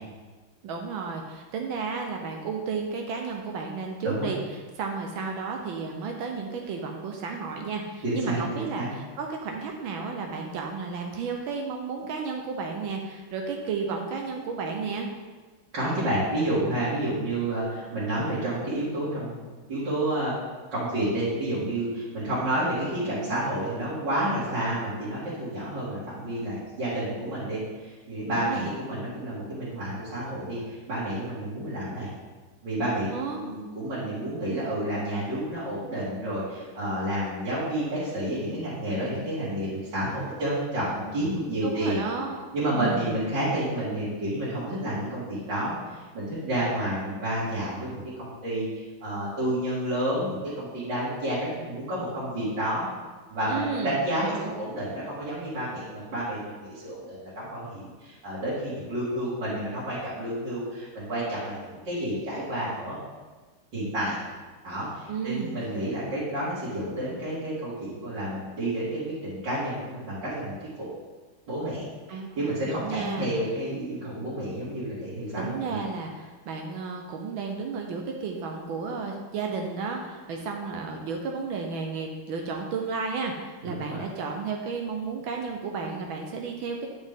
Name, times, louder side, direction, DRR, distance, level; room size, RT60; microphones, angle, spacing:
voice 1, 0.6-4.4 4.8-15.1 28.3-28.7 33.1-33.4 41.6-42.4 42.7-43.1 53.5-54.0 54.2-54.5 65.1-65.5 72.1-72.4 72.7-73.3 75.4-86.9, right 5 dB, 75° right, 2 dB, 1.4 m, -32 dB
voice 2, 8.0-8.9 15.7-19.4 19.7-20.3 20.7-32.1 32.6-42.0 42.5-52.8 53.3-63.0 63.7-64.2 64.6-70.5 71.5-71.8 72.4-75.8 83.6-84.0, right 1 dB, 55° right, -11 dB, 2.7 m, -30 dB
9.5 x 5.3 x 3.6 m, 1.3 s
omnidirectional pair, 2.4 m